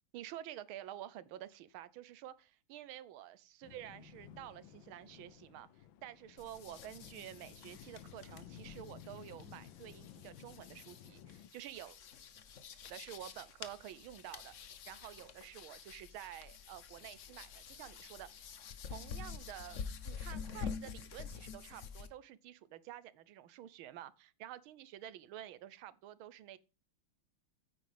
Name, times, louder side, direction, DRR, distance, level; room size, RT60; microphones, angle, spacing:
voice 1, 0.1-12.0 12.8-14.5 14.9-18.3 18.9-26.6, right 12 dB, 85° right, 1.6 m, -50 dB
sound 1, 3.6-11.5, left 10 dB, 75° left, 1.5 m, -55 dB
sound 2, 6.4-22.1, left 6 dB, 50° left, 0.9 m, -48 dB
9.3 x 8.8 x 3.4 m
omnidirectional pair, 2.2 m